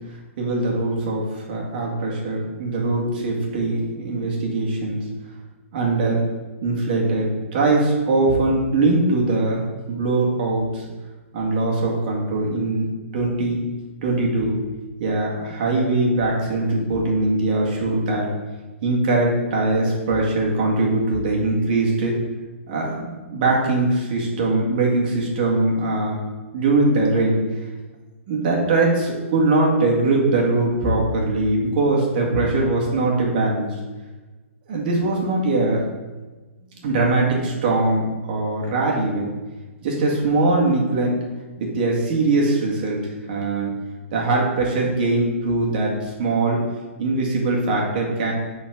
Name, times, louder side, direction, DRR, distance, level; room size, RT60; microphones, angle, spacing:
voice 1, 0.4-5.1 5.7-6.2 6.6-10.9 11.3-12.9 13.1-13.6 14.0-14.6 15.0-18.3 18.8-22.2 22.7-26.2 26.5-27.4 28.3-33.8 34.7-35.8 36.6-39.3 39.8-41.2 41.6-43.0 43.3-43.7 44.1-46.6 47.0-48.3, right 2 dB, 40° right, -2 dB, 1.8 m, -21 dB
5.7 x 4.2 x 5.9 m, 1.2 s
hypercardioid pair, 150°, 7 cm